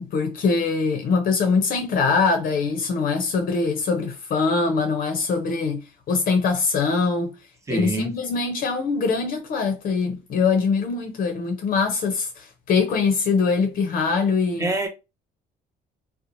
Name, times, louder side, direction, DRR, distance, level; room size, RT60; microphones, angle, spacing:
voice 1, 0.1-5.8 6.1-7.3 7.7-14.7, left 4 dB, 60° left, 0.6 m, -23 dB
voice 2, 7.7-8.1 14.6-14.9, right 2 dB, 20° right, 0.7 m, -25 dB
2.8 x 2.0 x 2.6 m
cardioid pair, 110°, 17 cm